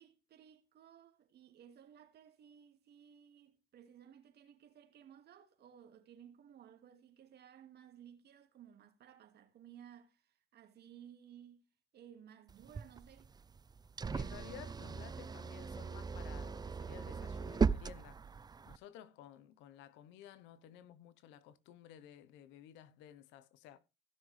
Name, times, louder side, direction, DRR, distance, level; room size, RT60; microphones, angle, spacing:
voice 1, 0.0-11.7 11.9-13.3, right 9 dB, 60° right, 2.4 m, -58 dB
sound 1, 12.5-18.8, right 5 dB, 20° right, 0.5 m, -38 dB
voice 2, 14.1-18.2 18.7-23.8, left 10 dB, 85° left, 1.1 m, -55 dB
16.0 x 6.4 x 3.4 m
supercardioid pair, 80°, 19 cm